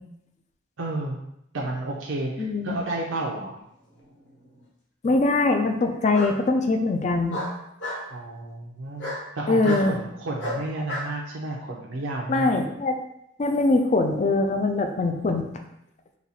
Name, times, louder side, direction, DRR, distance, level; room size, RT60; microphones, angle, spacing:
voice 1, 0.8-1.2 1.5-3.5 8.1-12.7, right 2 dB, 75° right, -2 dB, 0.6 m, -31 dB
voice 2, 2.4-2.8 5.0-7.4 9.5-10.0 12.3-13.0 13.4-15.5, left 2 dB, 35° left, 5 dB, 0.4 m, -22 dB
Bark, 4.0-4.6 6.1-6.3 7.3-8.0 9.0-9.2 9.6-9.9 10.4-11.1, left 1 dB, 60° left, 1.3 m, -32 dB
4.1 x 2.4 x 4.1 m, 0.79 s
head